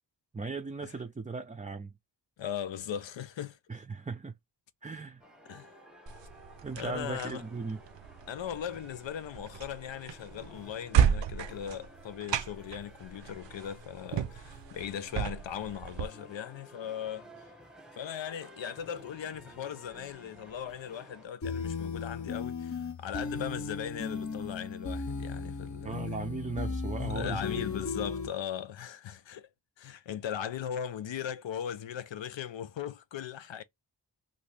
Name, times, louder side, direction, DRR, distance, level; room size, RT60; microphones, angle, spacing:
voice 1, 0.3-1.9 3.7-4.3 4.8-5.2 6.6-7.8 25.8-27.4, right 4 dB, 20° right, 0.4 m, -37 dB
voice 2, 2.4-3.6 5.5-5.7 6.7-7.4 8.3-17.3 18.0-26.0 26.7-26.8 27.1-29.5 29.8-33.6, left 9 dB, 85° left, 0.5 m, -38 dB
sound 1, 5.2-21.3, equal, ahead, 0.8 m, -54 dB
sound 2, 6.1-16.1, right 8 dB, 75° right, 0.5 m, -33 dB
sound 3, 21.4-28.3, left 4 dB, 40° left, 0.7 m, -36 dB
2.8 x 2.7 x 3.2 m
wide cardioid pair, 70°, 44 cm